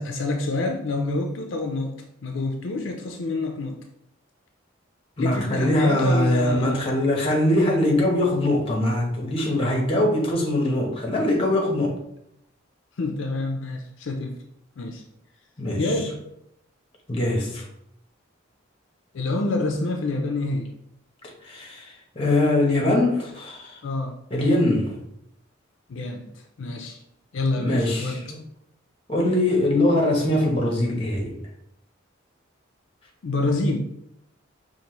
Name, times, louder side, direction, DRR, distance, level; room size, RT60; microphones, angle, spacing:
voice 1, 0.0-3.8 5.2-6.8 13.0-14.4 14.8-15.0 15.8-16.2 19.1-20.7 23.8-24.1 25.9-27.0 27.3-28.2 33.2-33.8, left 2 dB, 70° left, 3 dB, 0.5 m, -27 dB
voice 2, 5.2-12.0 15.6-16.1 17.1-17.7 21.4-23.8 24.3-25.0 27.6-28.4 29.1-31.4, left 1 dB, 30° left, 1 dB, 0.9 m, -22 dB
5.2 x 2.6 x 3.0 m, 0.78 s
head